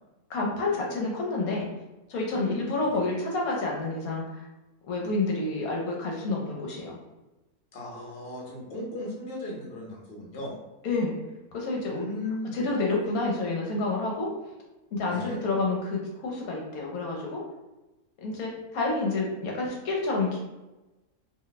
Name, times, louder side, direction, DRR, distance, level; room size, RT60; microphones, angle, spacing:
voice 1, 0.3-1.7 2.1-4.5 4.9-7.0 10.8-11.2 11.5-12.0 12.5-14.3 14.9-17.4 18.2-20.4, left 3 dB, 75° left, -2 dB, 1.1 m, -29 dB
voice 2, 2.3-2.8 7.7-10.5 11.9-12.6 15.0-15.4, left 1 dB, 45° left, -2 dB, 0.9 m, -36 dB
2.7 x 2.2 x 3.9 m, 1.0 s
omnidirectional pair, 1.6 m